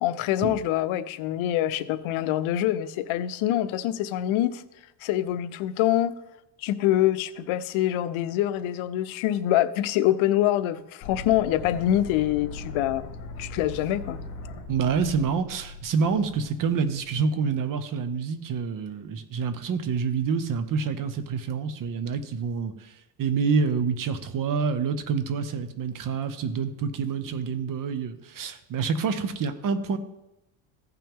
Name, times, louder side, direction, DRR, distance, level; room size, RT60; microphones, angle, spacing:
voice 1, 0.0-4.6 5.0-6.1 6.6-13.1 13.4-14.2, left 13 dB, 80° left, 0.7 m, -25 dB
sound 1, 11.0-17.0, left 2 dB, 50° left, 2.4 m, -40 dB
voice 2, 14.7-22.9 23.2-30.0, right 5 dB, 40° right, 0.8 m, -27 dB
15.0 x 5.8 x 3.7 m
cardioid pair, 140°, 49 cm